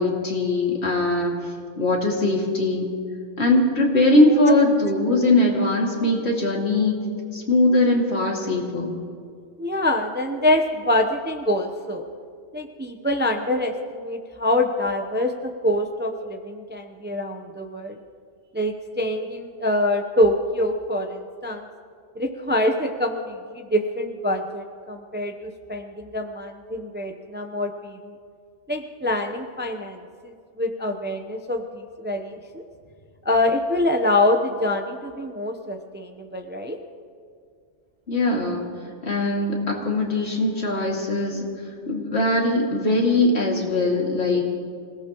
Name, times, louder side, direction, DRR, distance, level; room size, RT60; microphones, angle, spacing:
voice 1, 0.0-1.5 1.8-2.9 3.4-7.0 7.3-8.9 38.1-38.7 39.0-41.4 41.9-44.4, left 2 dB, 65° left, -1 dB, 2.6 m, -21 dB
voice 2, 9.6-12.0 12.5-18.0 18.5-21.7 22.2-28.1 28.7-32.6 33.2-36.8, left 1 dB, 10° right, 5 dB, 0.6 m, -25 dB
26.0 x 17.5 x 3.0 m, 2.2 s
omnidirectional pair, 1.2 m